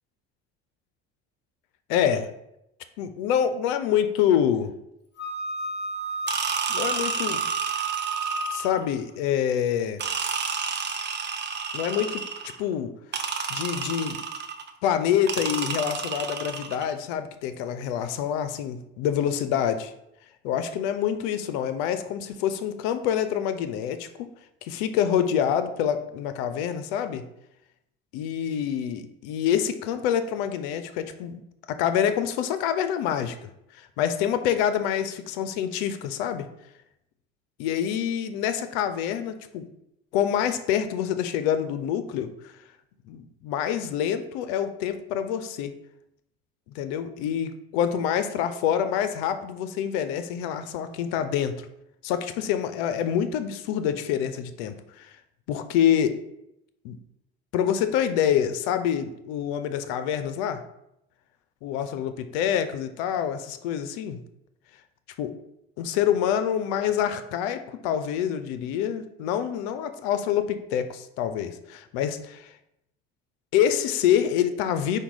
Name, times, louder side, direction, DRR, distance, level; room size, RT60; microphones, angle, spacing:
voice 1, 1.9-2.3 3.0-4.7 6.7-7.4 8.5-10.0 11.7-12.2 12.6-12.9 13.5-14.2 14.8-19.9 20.4-24.3 24.7-27.2 28.1-31.4 31.7-36.5 37.6-39.7 40.1-42.5 43.1-45.8 46.7-51.6 52.0-55.1 55.5-56.2 56.8-57.0 57.5-60.6 61.6-64.2 65.2-65.3 65.8-72.5 73.5-75.0, left 9 dB, 80° left, 10 dB, 0.5 m, -26 dB
Wind instrument woodwind instrument, 5.2-8.8, right 3 dB, 35° left, 0.9 m, -32 dB
sound 1, 6.3-8.8 10.0-12.6 13.1-14.7 15.3-16.9, right 6 dB, 35° right, 0.6 m, -31 dB
5.0 x 2.3 x 4.6 m, 0.82 s
supercardioid pair, 75°, 32 cm